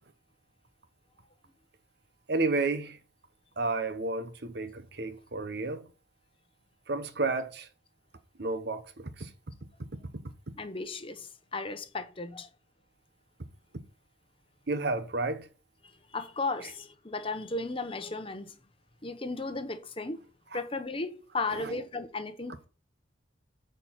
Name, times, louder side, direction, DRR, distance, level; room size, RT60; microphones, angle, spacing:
voice 1, 2.3-3.0 3.6-5.8 6.9-7.7 8.4-9.3 14.7-15.5, right 3 dB, 55° right, 0.9 m, -31 dB
voice 2, 10.6-12.5 15.8-18.5 19.0-20.2 20.5-22.7, left 3 dB, 25° left, 0.9 m, -35 dB
8.9 x 4.7 x 5.7 m
head